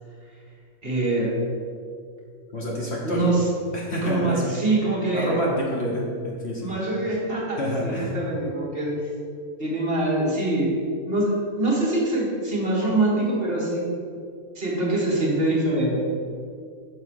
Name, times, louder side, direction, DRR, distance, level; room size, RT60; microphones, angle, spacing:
voice 1, 0.8-1.3 3.0-3.4 4.0-5.4 6.6-8.9 9.6-10.7 11.1-13.9 14.6-16.0, right 2 dB, 40° right, -5 dB, 1.9 m, -24 dB
voice 2, 2.5-3.3 3.7-4.5 5.1-6.7 7.6-8.1, equal, 50° left, -3 dB, 1.4 m, -27 dB
6.2 x 4.9 x 6.5 m, 2.3 s
omnidirectional pair, 1.6 m